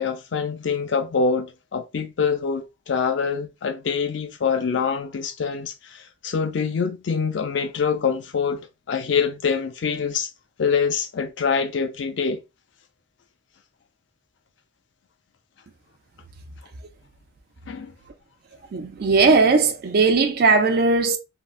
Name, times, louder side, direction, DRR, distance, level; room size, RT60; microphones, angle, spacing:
voice 1, 0.0-10.3 10.6-12.4 17.7-17.9, left 5 dB, 80° left, 0.4 m, -25 dB
voice 2, 18.7-21.2, right 4 dB, 55° right, 0.4 m, -18 dB
3.6 x 2.1 x 2.4 m
head